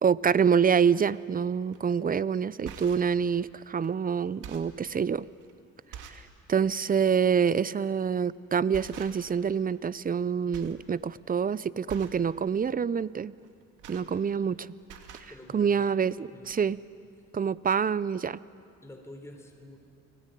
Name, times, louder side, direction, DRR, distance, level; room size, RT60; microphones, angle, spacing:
voice 1, 0.0-5.3 6.1-6.2 6.5-13.3 13.9-14.7 15.2-16.8 17.3-18.4, right 7 dB, 30° right, 19 dB, 0.7 m, -26 dB
sound 1, 1.7-1.9 2.5-3.1 3.8-3.9 4.3-4.8 5.4-5.5 5.9-6.3 6.7-6.9 8.0-8.3 8.7-9.4 9.7-10.2 10.5-10.8 11.1-11.4 11.9-12.3 13.4-14.5 14.8-15.3 16.1-16.2 16.4-16.6, right 7 dB, 90° right, 2.2 m, -46 dB
voice 2, 15.3-15.9 16.2-16.5 18.8-19.8, left 1 dB, 10° left, 2 dB, 3.8 m, -48 dB
30.0 x 20.5 x 9.2 m, 2.5 s
cardioid pair, 90°, 30 cm